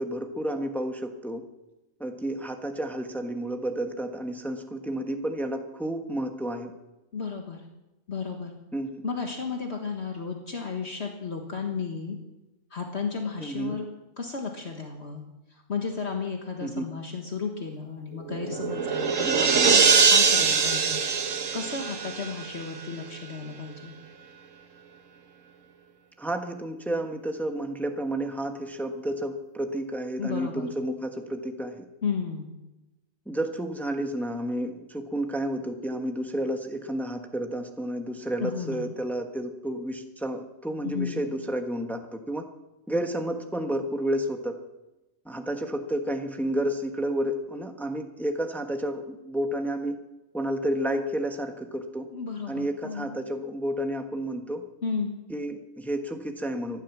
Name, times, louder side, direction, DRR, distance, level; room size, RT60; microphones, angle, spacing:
voice 1, 0.0-1.4 2.0-6.7 8.7-9.0 13.4-13.8 16.6-16.9 19.2-19.5 26.2-31.8 33.3-42.4 42.9-44.6 45.2-50.0 50.3-52.1 52.5-54.6 55.3-56.8, right 1 dB, ahead, 5 dB, 1.1 m, -31 dB
voice 2, 7.1-7.6 8.1-8.5 9.0-12.2 12.7-13.9 14.2-15.2 15.5-21.2 21.5-24.0 30.2-30.7 32.0-32.5 38.4-38.9 40.8-41.3 52.1-53.2 54.8-55.2, left 5 dB, 50° left, 2 dB, 1.7 m, -33 dB
sound 1, 18.2-22.8, right 5 dB, 65° right, 1.6 m, -22 dB
15.0 x 11.5 x 7.3 m, 1.0 s
omnidirectional pair, 1.4 m